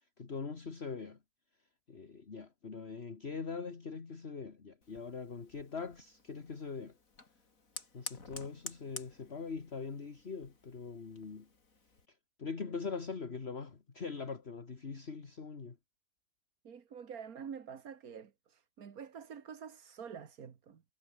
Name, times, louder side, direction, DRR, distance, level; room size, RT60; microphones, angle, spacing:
voice 1, 0.2-1.2 1.9-7.0 7.9-11.5 12.1-15.8, left 5 dB, 45° left, 2.1 m, -42 dB
Fire, 4.8-12.1, left 4 dB, 65° left, 3.5 m, -51 dB
voice 2, 16.6-20.8, right 7 dB, 85° right, 2.0 m, -47 dB
omnidirectional pair, 1.5 m